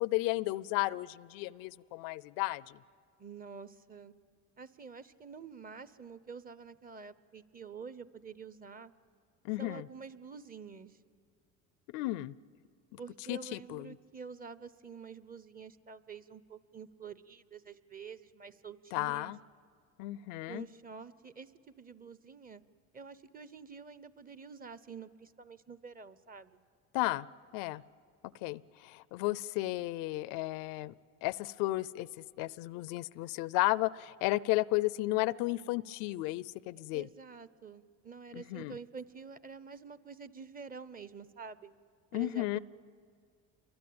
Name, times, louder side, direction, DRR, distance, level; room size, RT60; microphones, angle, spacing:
voice 1, 0.0-2.8 9.4-9.9 11.9-12.3 13.3-14.0 18.9-19.4 20.0-20.6 26.9-27.3 27.5-27.8 28.4-30.9 31.2-37.1 38.3-38.8 42.1-42.6, left 19 dB, 80° left, 20 dB, 0.6 m, -33 dB
voice 2, 3.2-4.1 4.6-8.9 9.6-11.0 13.0-19.3 20.5-22.6 22.9-26.6 36.9-41.7 42.1-42.6, right 5 dB, 25° right, 15 dB, 0.9 m, -48 dB
28.5 x 23.5 x 8.7 m, 2.1 s
supercardioid pair, 100°, 34 cm